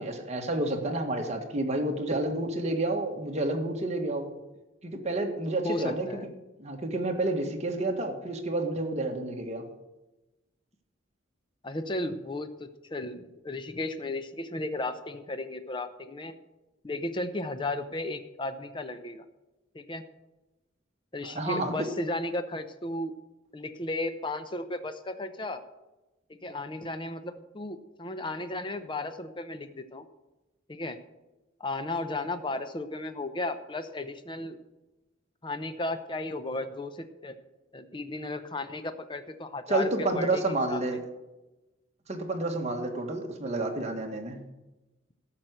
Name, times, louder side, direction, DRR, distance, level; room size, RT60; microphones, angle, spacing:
voice 1, 0.0-4.3 4.8-6.1 6.6-9.6 21.2-21.9 39.7-41.0 42.1-44.4, right 2 dB, 35° right, 3 dB, 1.6 m, -30 dB
voice 2, 5.6-6.3 11.6-16.4 16.8-19.2 19.7-20.0 21.1-23.1 23.5-25.6 26.4-30.0 30.7-31.0 31.6-34.6 35.4-37.4 37.7-40.4 40.7-41.0 43.4-43.5, left 2 dB, 25° left, 9 dB, 0.7 m, -34 dB
13.0 x 6.0 x 8.0 m, 1.0 s
head